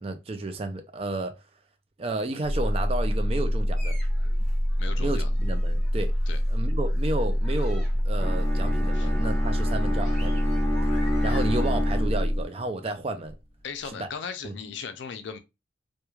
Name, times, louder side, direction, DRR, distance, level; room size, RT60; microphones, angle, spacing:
voice 1, 0.0-1.3 2.0-4.0 5.0-6.1 6.5-10.4 11.2-13.3 13.8-14.1 14.4-14.5, right 2 dB, 30° right, 0.3 m, -32 dB
sound 1, 2.4-12.5, equal, 80° right, 1.0 m, -25 dB
sound 2, 3.8-11.8, left 1 dB, 5° right, 1.1 m, -46 dB
voice 2, 4.8-5.4 6.3-6.4 8.9-9.1 13.6-15.4, left 6 dB, 75° left, 0.4 m, -37 dB
Bowed string instrument, 8.2-12.6, left 1 dB, 15° left, 0.8 m, -31 dB
3.0 x 2.2 x 2.3 m
head